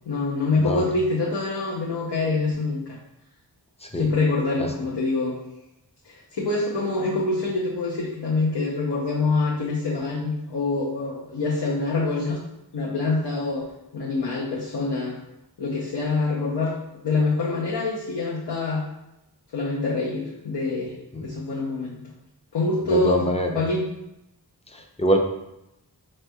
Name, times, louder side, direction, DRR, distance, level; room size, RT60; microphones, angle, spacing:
voice 1, 0.1-3.0 4.0-5.4 6.0-12.4 12.7-15.2 15.6-16.7 17.0-18.9 19.5-20.9 21.2-22.0 22.5-23.3 23.5-23.9, left 3 dB, 70° left, -5 dB, 0.7 m, -25 dB
voice 2, 22.8-23.5 24.7-25.2, equal, 15° left, 2 dB, 0.5 m, -24 dB
5.1 x 3.2 x 2.2 m, 0.87 s
wide cardioid pair, 50°, 42 cm